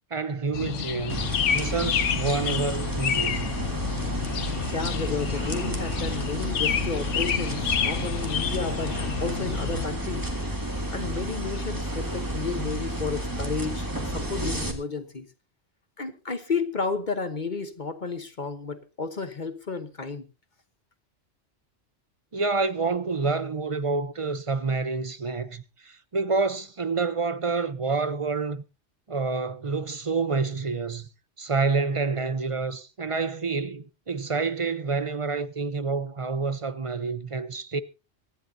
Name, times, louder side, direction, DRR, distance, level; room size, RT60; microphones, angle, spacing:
voice 1, 0.1-1.3 1.5-3.5 22.3-28.6 29.1-31.1 31.4-37.8, right 4 dB, 35° right, 0.7 m, -28 dB
sound 1, 0.5-9.8, left 8 dB, 90° left, 1.2 m, -29 dB
sound 2, 1.1-14.7, right 1 dB, 15° right, 1.9 m, -31 dB
voice 2, 4.6-10.3 10.9-15.3 16.0-20.3, left 4 dB, 45° left, 1.2 m, -32 dB
24.0 x 10.5 x 2.7 m
omnidirectional pair, 1.2 m